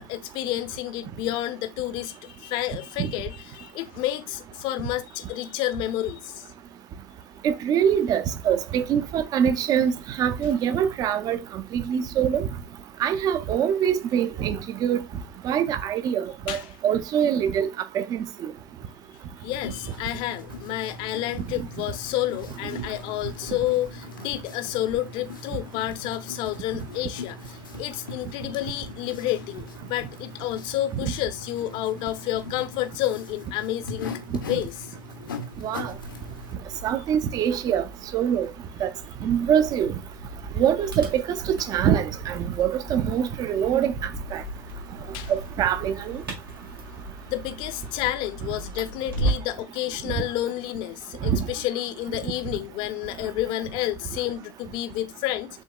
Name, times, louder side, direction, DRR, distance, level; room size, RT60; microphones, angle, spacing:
voice 1, 0.0-6.5 16.5-16.7 19.4-34.2 34.5-35.0 45.1-45.3 47.3-55.6, left 14 dB, 45° left, 0.7 m, -30 dB
voice 2, 7.4-12.5 13.0-15.0 15.4-18.5 21.6-21.7 34.3-34.4 35.6-35.9 36.8-37.9 38.1-38.5 38.8-38.9 39.2-40.0 40.6-44.4 45.3-46.2 51.2-51.4, right 9 dB, 35° right, 0.6 m, -24 dB
sound 1, 19.5-36.6, left 3 dB, 70° left, 0.8 m, -40 dB
sound 2, 35.9-49.6, right 1 dB, 80° right, 1.8 m, -37 dB
6.3 x 3.5 x 2.2 m
figure-of-eight pair, 80°, 11 cm